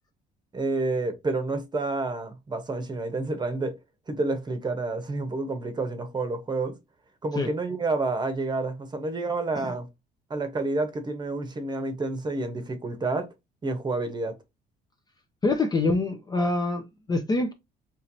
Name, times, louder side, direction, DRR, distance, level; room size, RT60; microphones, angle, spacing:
voice 1, 0.5-3.8 4.1-6.8 7.2-9.9 10.3-13.3 13.6-14.4, right 3 dB, 25° right, 0.9 m, -29 dB
voice 2, 15.4-17.5, left 2 dB, 25° left, 0.6 m, -25 dB
4.5 x 3.1 x 2.7 m
cardioid pair, 110°, 17 cm